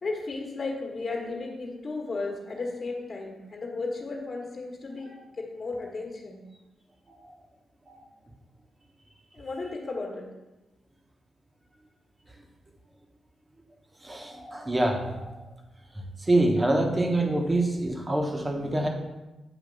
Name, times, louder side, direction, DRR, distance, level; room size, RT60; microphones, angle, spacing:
voice 1, 0.0-6.4 9.3-10.3, left 3 dB, 45° left, -1 dB, 1.3 m, -34 dB
voice 2, 14.0-15.4 16.3-18.9, right 1 dB, 25° right, 2 dB, 1.2 m, -25 dB
8.1 x 2.9 x 5.3 m, 1.1 s
supercardioid pair, 55°, 0 cm